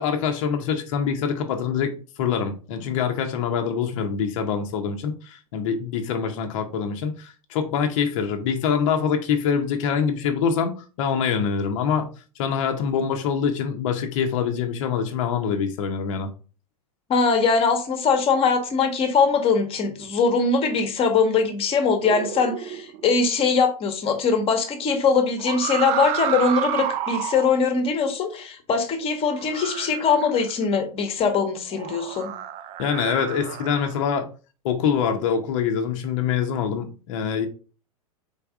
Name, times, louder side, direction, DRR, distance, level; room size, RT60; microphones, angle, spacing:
voice 1, 0.0-12.1 12.4-16.3 32.8-34.3 34.6-37.5, left 7 dB, 55° left, 0.8 m, -25 dB
voice 2, 17.1-32.3, left 5 dB, 30° left, 1.1 m, -22 dB
sound 1, 22.0-23.1 25.4-27.6 29.3-30.6 31.7-34.1, right 10 dB, 35° right, 0.5 m, -30 dB
4.1 x 3.5 x 3.5 m
hypercardioid pair, 100°, 19 cm